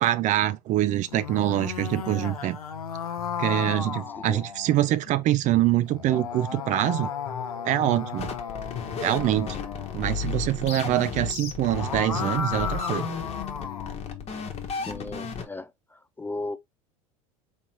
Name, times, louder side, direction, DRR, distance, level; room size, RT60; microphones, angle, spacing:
voice 1, 0.0-2.6 3.4-7.1 7.6-8.3 9.0-9.6 9.9-13.1, right 13 dB, 40° right, 0.5 m, -24 dB
sound 1, 1.0-4.9 5.9-10.1 11.5-14.0, left 7 dB, 90° left, 0.7 m, -34 dB
sound 2, 1.2-15.5, left 11 dB, 60° left, 0.9 m, -44 dB
sound 3, 8.2-15.4, left 5 dB, 35° left, 1.2 m, -34 dB
voice 2, 14.8-15.7 16.2-16.6, left 2 dB, 10° left, 0.3 m, -34 dB
4.2 x 3.3 x 2.9 m
hypercardioid pair, 80°, 18 cm